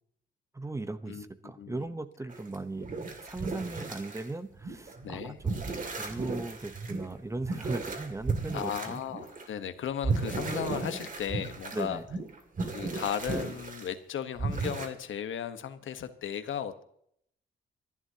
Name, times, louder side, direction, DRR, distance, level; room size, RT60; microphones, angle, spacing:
voice 1, 0.5-2.9 3.2-5.6 6.0-9.0 11.7-12.1, right 2 dB, 15° right, 11 dB, 0.9 m, -37 dB
voice 2, 1.1-1.9 5.0-5.4 8.5-12.0 12.7-16.8, left 9 dB, 80° left, 10 dB, 1.2 m, -36 dB
sound 1, 2.3-4.3 4.6-9.5 10.0-13.9 14.4-14.9, right 4 dB, 40° right, 2.4 m, -35 dB
26.5 x 11.0 x 2.8 m, 0.70 s
cardioid pair, 120°, 20 cm